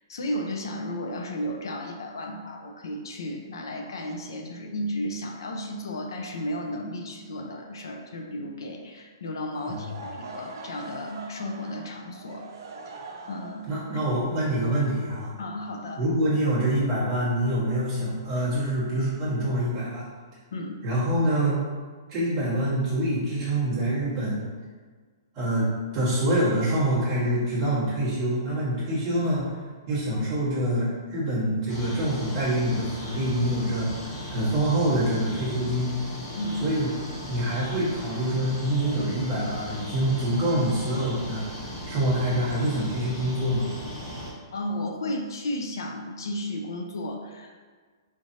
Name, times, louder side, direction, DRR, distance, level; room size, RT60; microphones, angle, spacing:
voice 1, 0.1-12.5 13.3-14.0 15.4-16.0 20.5-20.8 36.3-36.7 44.5-47.6, left 1 dB, 70° left, 3 dB, 0.6 m, -33 dB
Laughter / Crowd, 9.5-15.5, right 3 dB, 60° right, 0.7 m, -43 dB
voice 2, 13.7-15.4 16.0-20.1 20.8-21.6 22.1-24.4 25.3-25.7 25.9-29.5 29.9-35.9 36.6-36.9 37.3-41.6 41.9-43.7, right 1 dB, 15° right, -9 dB, 1.2 m, -26 dB
sound 1, 31.7-44.3, equal, 20° left, 0.7 m, -37 dB
5.0 x 3.2 x 2.7 m, 1.5 s
hypercardioid pair, 180°, 2 cm